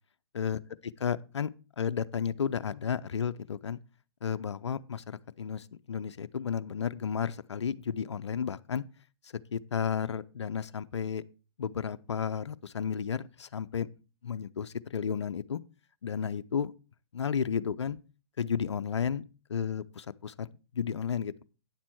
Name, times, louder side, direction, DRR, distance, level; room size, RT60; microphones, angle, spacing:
voice 1, 0.3-1.5 1.8-3.8 4.2-8.8 9.5-11.2 11.6-13.9 14.2-15.6 16.0-16.7 17.1-18.0 18.4-19.2 19.5-20.5 20.7-21.3, left 7 dB, 85° left, 0.5 m, -32 dB
9.4 x 7.4 x 4.4 m
hypercardioid pair, 125°, 14 cm